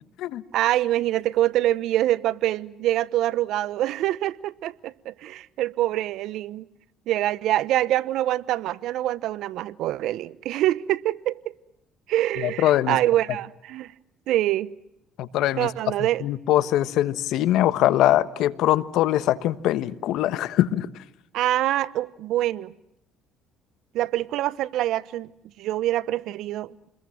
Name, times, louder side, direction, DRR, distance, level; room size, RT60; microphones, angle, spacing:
voice 1, 0.5-6.7 7.1-11.5 12.1-13.9 14.3-14.7 15.6-16.3 21.3-22.7 23.9-25.3 25.6-26.9, right 14 dB, 70° right, 1.0 m, -25 dB
voice 2, 12.6-13.0 15.2-15.7 16.2-20.9, left 13 dB, 70° left, 1.3 m, -22 dB
29.0 x 21.5 x 7.8 m
supercardioid pair, 90°, 0 cm